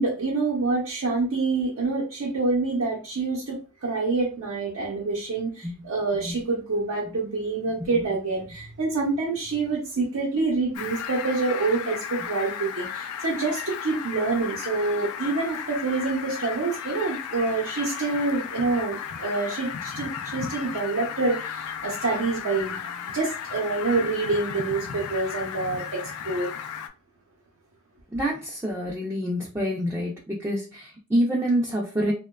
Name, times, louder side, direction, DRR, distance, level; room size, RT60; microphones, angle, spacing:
voice 1, 0.0-22.8 23.1-26.5, right 3 dB, 70° right, -3 dB, 0.6 m, -27 dB
Fowl, 10.7-26.9, left 8 dB, 85° left, 0.4 m, -35 dB
voice 2, 28.1-32.1, equal, 10° right, -3 dB, 0.3 m, -27 dB
2.8 x 2.2 x 2.2 m, 0.34 s
head